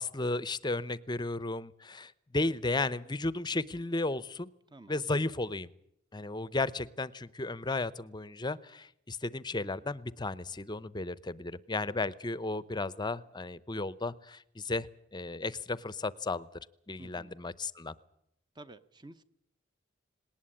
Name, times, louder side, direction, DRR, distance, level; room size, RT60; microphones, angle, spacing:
voice 1, 0.0-4.5 4.9-5.7 6.1-14.9 15.1-16.5 16.9-17.9, left 2 dB, 20° left, 18 dB, 0.7 m, -34 dB
voice 2, 4.7-5.0 17.0-17.3 18.5-19.2, right 2 dB, 20° right, 10 dB, 0.8 m, -51 dB
19.5 x 19.0 x 8.7 m, 0.76 s
head